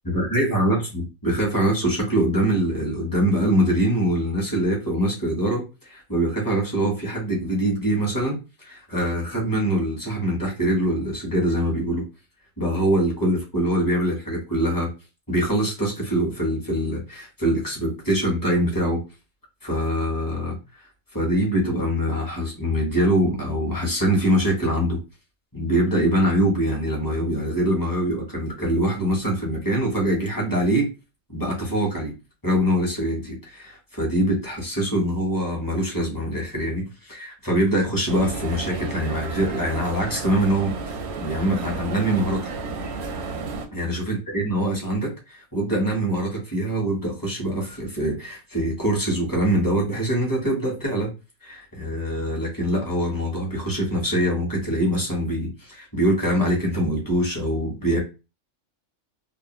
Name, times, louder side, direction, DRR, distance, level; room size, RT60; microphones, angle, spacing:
voice 1, 0.0-12.0 12.6-14.9 15.3-19.0 19.6-20.6 21.1-25.0 25.5-30.9 31.3-32.1 32.4-42.4 43.7-51.1 51.4-58.0, right 1 dB, 20° left, -2 dB, 0.8 m, -24 dB
sound 1, 38.1-43.7, right 4 dB, 65° right, 0.7 m, -32 dB
2.5 x 2.1 x 2.9 m, 0.29 s
omnidirectional pair, 1.4 m